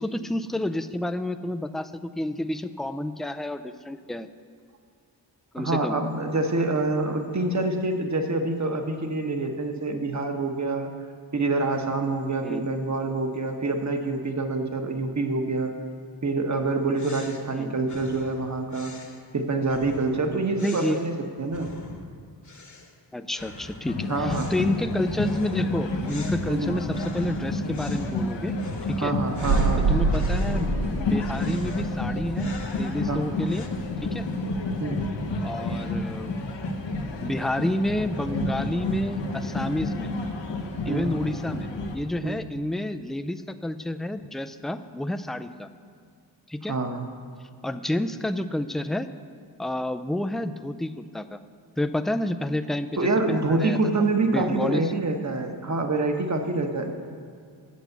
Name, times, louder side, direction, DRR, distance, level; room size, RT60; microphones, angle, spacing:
voice 1, 0.0-4.3 5.5-5.9 12.4-12.6 17.5-17.8 20.6-21.0 23.1-28.5 28.9-29.1 29.8-30.7 31.0-33.7 34.0-34.3 35.4-36.4 37.2-40.1 40.8-45.7 46.5-46.8 47.6-49.1 49.6-51.4 51.8-53.8 54.3-54.9, left 1 dB, ahead, 9 dB, 0.3 m, -30 dB
voice 2, 5.6-10.9 11.3-15.7 16.2-18.9 19.3-21.7 24.1-24.5 26.5-26.7 29.0-29.9 33.1-33.2 34.8-35.0 40.9-41.1 42.2-42.4 46.7-47.1 53.0-56.9, right 3 dB, 40° right, 5 dB, 1.2 m, -26 dB
sound 1, 16.5-22.2 22.4-23.0 23.3-30.9 31.3-33.7, left 2 dB, 40° left, 1.2 m, -45 dB
sound 2, 23.9-42.0, left 2 dB, 85° left, 1.1 m, -30 dB
sound 3, 29.4-33.2 33.4-33.5, right 3 dB, 70° right, 0.9 m, -26 dB
8.5 x 6.8 x 7.9 m, 2.1 s
cardioid pair, 55°, 43 cm